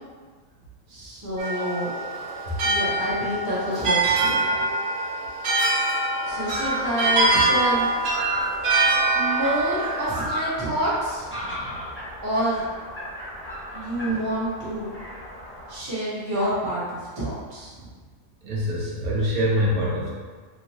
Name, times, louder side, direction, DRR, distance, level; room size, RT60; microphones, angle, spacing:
voice 1, 0.9-1.9 2.6-4.6 6.3-7.8 9.1-11.8 12.2-12.6 13.7-14.9 15.7-17.9, right 1 dB, 20° right, -9 dB, 0.7 m, -28 dB
sound 1, 1.4-10.2, right 2 dB, 60° right, 0.7 m, -24 dB
sound 2, 6.3-15.8, equal, 20° left, 0.3 m, -35 dB
voice 2, 18.4-20.1, equal, 80° right, -4 dB, 1.2 m, -24 dB
3.0 x 2.8 x 2.9 m, 1.5 s
omnidirectional pair, 1.5 m